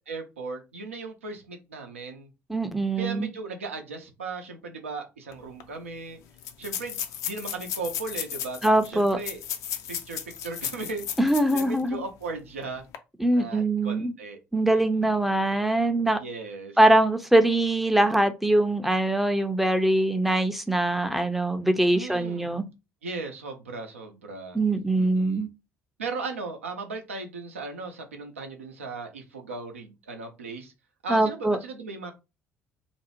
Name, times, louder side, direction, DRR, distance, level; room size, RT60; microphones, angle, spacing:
voice 1, 0.1-2.3 3.0-6.2 6.6-7.0 7.2-9.4 9.9-11.1 11.5-12.9 13.3-14.4 14.7-15.2 16.2-16.8 21.9-22.6 23.0-24.6 24.9-25.5 26.0-30.7 31.0-32.1, right 3 dB, 80° right, 0.5 m, -37 dB
voice 2, 2.5-3.3 8.6-9.2 11.2-12.0 13.2-14.1 14.5-16.2 16.8-22.7 24.5-25.5 31.1-31.6, right 1 dB, ahead, 0.5 m, -22 dB
sound 1, 5.3-5.4 5.6-5.7 6.4-11.8 12.2-12.3 12.8-13.0, left 9 dB, 55° left, 0.4 m, -35 dB
2.5 x 2.0 x 2.9 m
figure-of-eight pair, 55°, 7 cm